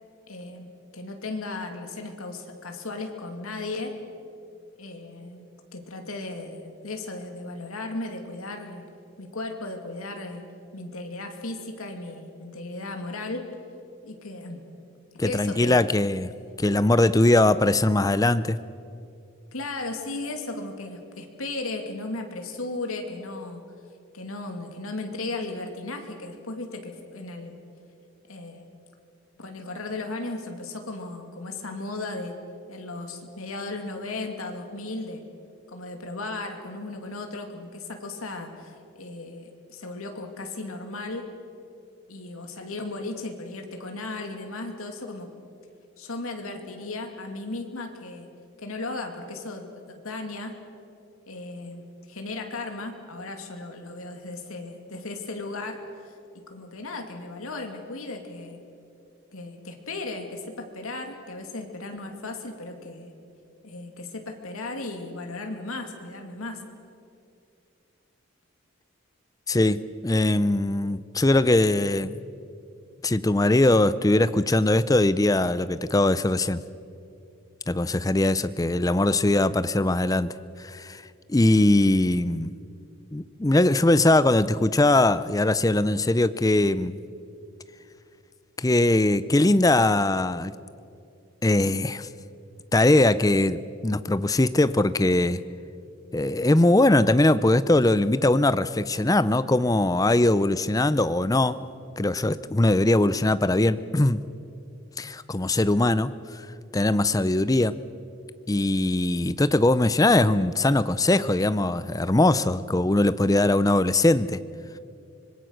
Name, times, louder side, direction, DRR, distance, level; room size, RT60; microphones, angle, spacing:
voice 1, 0.3-3.9 4.8-8.8 9.2-10.5 10.7-13.5 14.0-14.6 15.2-15.8 19.5-23.6 24.1-27.5 28.3-28.6 29.4-32.4 32.7-35.2 35.7-41.3 42.1-45.3 46.0-48.3 48.6-50.5 51.3-56.2 56.5-58.6 59.3-63.1 63.6-66.6, left 2 dB, 80° left, 4 dB, 2.6 m, -36 dB
voice 2, 15.2-16.3 16.6-18.6 69.5-72.2 73.0-76.6 77.7-81.0 81.3-82.5 83.1-87.0 88.6-90.5 91.4-92.1 92.7-95.4 96.1-101.6 102.0-104.2 105.0-106.4 106.7-107.8 108.5-114.4, left 2 dB, 15° left, 15 dB, 0.5 m, -21 dB
25.0 x 21.0 x 6.5 m, 2.5 s
head